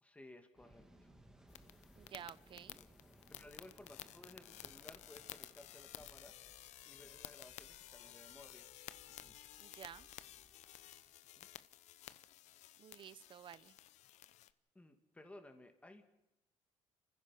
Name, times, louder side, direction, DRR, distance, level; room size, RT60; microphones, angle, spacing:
voice 1, 0.0-1.1 2.5-2.9 3.4-6.3 6.8-8.7 11.4-11.5 14.7-16.0, left 1 dB, 10° left, 7 dB, 2.4 m, -58 dB
Waves surf, 0.5-11.1, right 1 dB, 5° right, 2.2 m, -66 dB
sound 1, 1.5-14.5, left 13 dB, 80° left, 0.9 m, -55 dB
voice 2, 2.0-2.8 9.6-10.1 12.8-13.7, right 9 dB, 45° right, 19 dB, 0.7 m, -52 dB
29.0 x 15.5 x 6.0 m, 0.91 s
cardioid pair, 130°, 12 cm